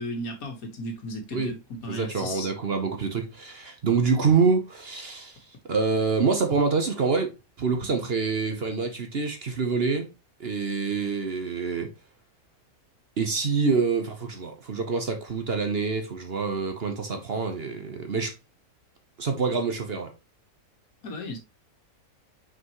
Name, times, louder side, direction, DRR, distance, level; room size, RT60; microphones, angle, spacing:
voice 1, 0.0-2.5 21.0-21.4, left 1 dB, 70° left, 1.8 m, -35 dB
voice 2, 1.9-5.4 5.6-7.3 7.6-10.1 10.4-11.9 13.2-18.3 19.2-20.1, right 4 dB, 45° right, 1.0 m, -26 dB
6.0 x 5.1 x 3.0 m
omnidirectional pair, 1.6 m